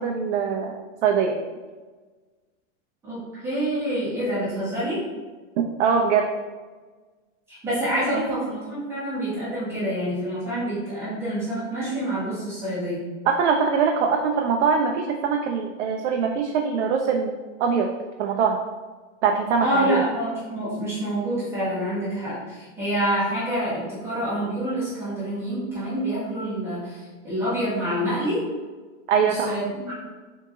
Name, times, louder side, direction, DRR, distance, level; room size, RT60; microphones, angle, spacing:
voice 1, 0.0-1.4 5.8-6.3 8.1-8.2 13.3-17.3 17.6-17.9 18.2-18.6 19.2-20.0 29.1-29.6, right 6 dB, 65° right, 2 dB, 0.5 m, -22 dB
voice 2, 3.0-5.0 7.5-13.0 19.6-28.4 29.2-30.0, right 1 dB, 5° right, -11 dB, 0.8 m, -27 dB
3.7 x 2.8 x 3.5 m, 1.3 s
supercardioid pair, 170°, 38 cm